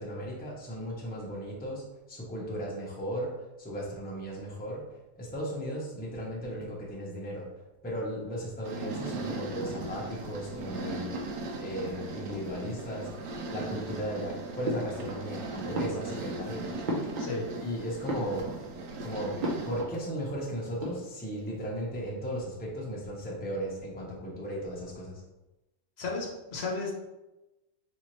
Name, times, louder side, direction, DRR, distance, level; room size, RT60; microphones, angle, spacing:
voice 1, 0.0-3.3 3.6-4.8 5.2-7.5 7.8-11.1 11.6-13.1 13.5-16.7 17.6-18.5 19.0-19.4 19.7-25.2, equal, 10° left, -4 dB, 0.5 m, -36 dB
sound 1, 8.6-19.8, right 2 dB, 85° right, 1.3 m, -38 dB
sound 2, 14.6-15.4 15.7-17.7 18.0-18.8 19.4-20.0 20.3-20.4 20.6-21.4, equal, 45° right, 0.6 m, -36 dB
voice 2, 26.0-26.9, left 3 dB, 45° left, -2 dB, 1.0 m, -33 dB
4.2 x 3.4 x 3.1 m, 1.0 s
omnidirectional pair, 1.8 m